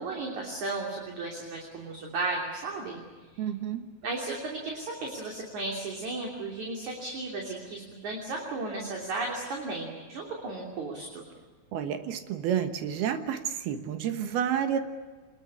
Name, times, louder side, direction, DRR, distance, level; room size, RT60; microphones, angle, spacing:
voice 1, 0.0-3.0 3.3-3.4 4.0-11.2, right 3 dB, 50° right, 0 dB, 4.3 m, -35 dB
voice 2, 3.4-3.9 11.7-14.8, right 9 dB, 75° right, 8 dB, 3.3 m, -30 dB
25.5 x 21.0 x 8.7 m, 1.4 s
omnidirectional pair, 4.6 m